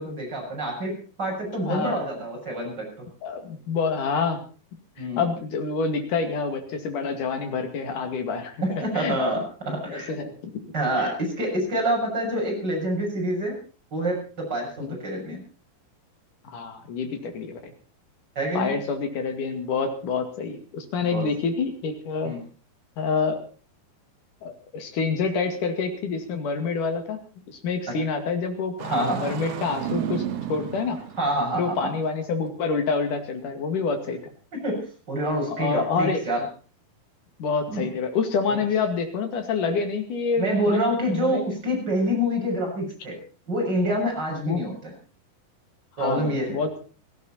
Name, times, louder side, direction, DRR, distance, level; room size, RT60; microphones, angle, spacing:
voice 1, 0.0-2.9 5.0-5.3 8.6-10.1 10.7-13.6 13.9-14.2 14.5-15.4 18.4-18.7 21.1-21.3 22.2-22.4 28.9-29.4 31.2-31.9 34.5-36.4 37.7-37.9 38.5-38.6 40.4-43.2 43.5-44.9 46.0-46.6, right 1 dB, 25° right, -1 dB, 7.4 m, -27 dB
voice 2, 1.6-2.0 3.2-4.4 5.0-9.2 9.9-10.5 11.0-11.1 14.8-15.0 16.5-17.7 18.5-22.3 23.0-23.4 24.4-27.2 27.5-30.2 30.5-31.0 31.6-34.2 35.5-36.2 37.4-40.8 41.1-41.4 44.4-44.6 46.0-46.8, left 5 dB, 60° left, 6 dB, 3.6 m, -27 dB
Engine starting, 28.8-31.8, right 10 dB, 75° right, 1.4 m, -32 dB
18.0 x 15.5 x 4.4 m, 0.38 s
omnidirectional pair, 4.4 m